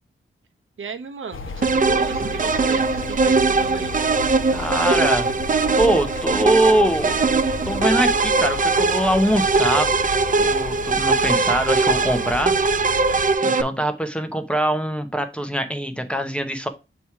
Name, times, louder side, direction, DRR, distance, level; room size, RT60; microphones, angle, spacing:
voice 1, 0.8-3.9, right 5 dB, 70° right, 8 dB, 0.8 m, -33 dB
sound 1, 1.3-13.3, left 3 dB, 70° left, 0.8 m, -34 dB
sound 2, 1.6-13.6, right 4 dB, 40° right, 0.4 m, -21 dB
voice 2, 4.5-5.3 5.8-7.2 7.7-9.9 10.4-12.6 13.4-16.7, right 1 dB, 5° left, 6 dB, 0.7 m, -23 dB
7.0 x 3.0 x 4.6 m, 0.27 s
wide cardioid pair, 135°, 21 cm